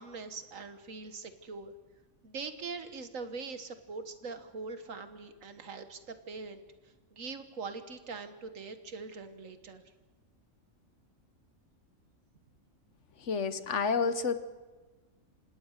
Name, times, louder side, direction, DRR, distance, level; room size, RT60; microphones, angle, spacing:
voice 1, 0.0-1.7 2.2-6.6 7.1-9.8, right 4 dB, 75° right, 9 dB, 1.8 m, -42 dB
voice 2, 13.2-14.4, left 5 dB, 60° left, 12 dB, 1.3 m, -30 dB
27.5 x 17.0 x 6.6 m, 1.3 s
omnidirectional pair, 1.4 m